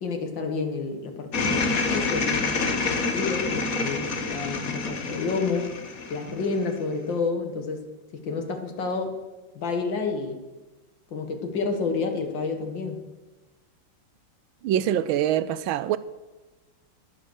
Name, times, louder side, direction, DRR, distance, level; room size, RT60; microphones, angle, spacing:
voice 1, 0.0-5.7 6.1-7.9 8.1-9.2 9.5-10.4 11.1-13.0, left 4 dB, 65° left, 2.3 m, -29 dB
sound 1, 1.3-6.7, left 4 dB, 45° left, 1.6 m, -27 dB
voice 2, 14.6-16.0, right 11 dB, 80° right, 1.4 m, -24 dB
11.5 x 11.0 x 6.4 m
omnidirectional pair, 2.2 m